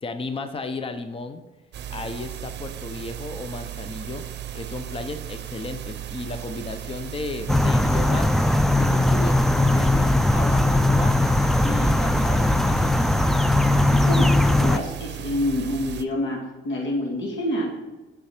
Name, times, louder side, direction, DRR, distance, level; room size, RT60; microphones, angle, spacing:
voice 1, 0.0-1.4 1.9-4.2 4.5-8.3 8.8-11.2 11.6-12.9, left 3 dB, 30° left, 8 dB, 0.8 m, -34 dB
sound 1, 1.7-16.0, right 11 dB, 60° right, 0.6 m, -36 dB
sound 2, 7.5-14.8, left 1 dB, ahead, 0.3 m, -19 dB
voice 2, 13.9-17.7, left 1 dB, 70° left, 0 dB, 2.2 m, -27 dB
8.4 x 6.1 x 4.4 m, 1.2 s
cardioid pair, 90°, 20 cm